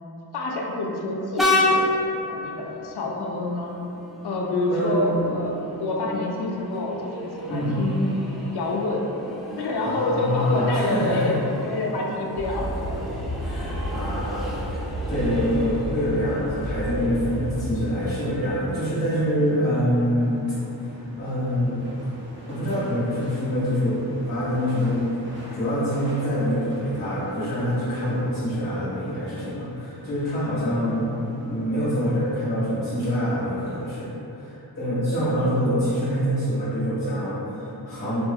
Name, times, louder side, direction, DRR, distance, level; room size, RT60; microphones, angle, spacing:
voice 1, 0.3-1.9 2.3-3.7 4.2-5.5 5.8-8.1 8.5-9.1 9.6-11.4 11.6-13.0 13.4-13.5 19.5-19.7 30.4-30.8 35.2-35.5, left 2 dB, 75° left, -1 dB, 0.6 m, -27 dB
Train, 1.4-18.7, left 1 dB, ahead, 0.4 m, -32 dB
voice 2, 4.7-5.3 7.5-7.8 9.8-11.3 13.4-21.8 22.5-25.1 25.5-38.2, equal, 35° left, -12 dB, 1.4 m, -25 dB
sound 1, 12.3-17.7, equal, 85° right, 1.4 m, -31 dB
sound 2, 15.2-33.9, equal, 30° right, 0.7 m, -44 dB
4.6 x 2.7 x 2.3 m, 2.9 s
wide cardioid pair, 150°, 39 cm